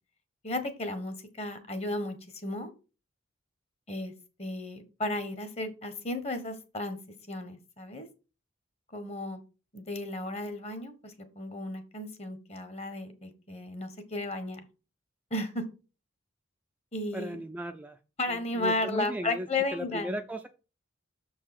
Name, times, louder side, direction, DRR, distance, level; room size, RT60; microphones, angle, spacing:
voice 1, 0.4-2.2 2.4-2.7 3.9-4.1 4.4-7.0 7.3-8.1 8.9-9.4 9.7-14.6 15.3-15.6 16.9-17.4 18.2-20.2, left 2 dB, 35° left, 9 dB, 1.3 m, -34 dB
voice 2, 17.1-18.0 18.3-20.5, right 1 dB, 10° right, 6 dB, 0.4 m, -37 dB
6.7 x 4.6 x 6.0 m, 0.33 s
head